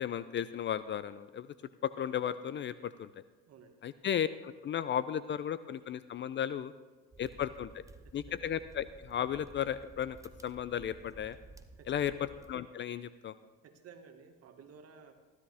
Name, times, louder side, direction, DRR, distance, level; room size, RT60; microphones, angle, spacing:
voice 1, 0.0-1.5 1.8-3.1 3.8-6.7 7.2-7.8 8.1-10.2 10.4-11.4 11.9-13.3, left 9 dB, 35° left, 15 dB, 0.5 m, -35 dB
voice 2, 3.5-3.8 8.0-8.5 11.8-12.2 13.6-15.1, right 6 dB, 50° right, 6 dB, 1.8 m, -55 dB
sound 1, 7.1-12.5, right 2 dB, 10° right, 0.7 m, -54 dB
15.5 x 12.5 x 3.5 m, 1.3 s
supercardioid pair, 90°, 32 cm